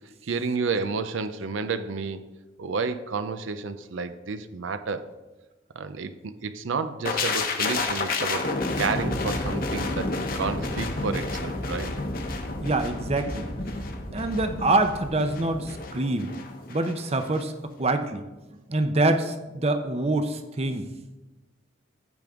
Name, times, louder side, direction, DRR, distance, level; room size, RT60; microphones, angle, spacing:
voice 1, 0.2-2.3 2.6-5.1 5.8-8.5 8.8-11.9, right 4 dB, 85° right, 11 dB, 0.6 m, -30 dB
sound 1, 7.0-16.9 17.2-17.4, left 3 dB, 45° left, 1.0 m, -30 dB
voice 2, 12.6-13.5 14.1-16.3 16.7-18.2 18.7-20.9, right 2 dB, 30° right, 8 dB, 0.7 m, -25 dB
15.0 x 5.2 x 3.6 m, 1.1 s
head